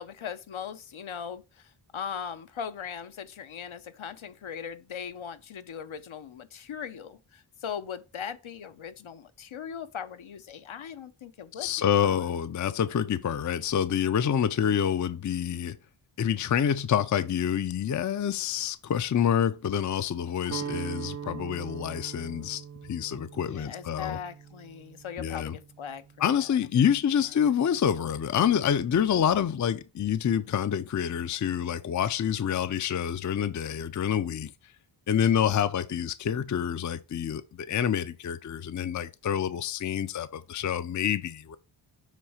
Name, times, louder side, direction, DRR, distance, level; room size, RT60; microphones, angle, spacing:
voice 1, 0.0-12.3 23.3-26.0 27.4-27.5, left 7 dB, 70° left, 0.7 m, -39 dB
voice 2, 11.6-15.8 16.2-22.6 22.9-24.2 25.2-25.6 26.2-34.5 35.1-41.6, left 8 dB, 40° left, 0.4 m, -27 dB
Guitar, 20.5-26.5, right 8 dB, 35° right, 0.5 m, -41 dB
7.5 x 3.2 x 4.9 m
wide cardioid pair, 105°, 49 cm